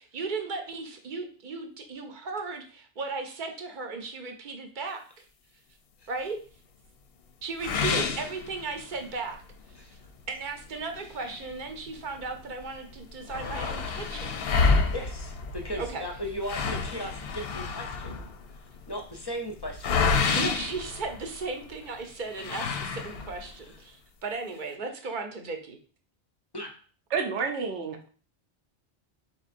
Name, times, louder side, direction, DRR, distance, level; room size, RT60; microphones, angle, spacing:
voice 1, 0.0-5.0 6.1-6.4 7.4-9.4 9.7-9.9 10.3-14.3 15.8-16.0 20.4-25.8, right 4 dB, 50° right, 5 dB, 0.8 m, -36 dB
sound 1, 7.6-9.1 9.5-9.6 10.1-10.2 10.9-12.3 12.6-12.7 12.9-21.7 22.3-23.5, left 4 dB, 65° left, 0.7 m, -29 dB
voice 2, 14.9-18.2 18.9-20.0 26.5-26.7, equal, 30° left, 3 dB, 0.5 m, -37 dB
voice 3, 27.1-28.1, right 5 dB, 85° right, 5 dB, 1.0 m, -29 dB
4.4 x 3.7 x 2.5 m, 0.41 s
omnidirectional pair, 1.1 m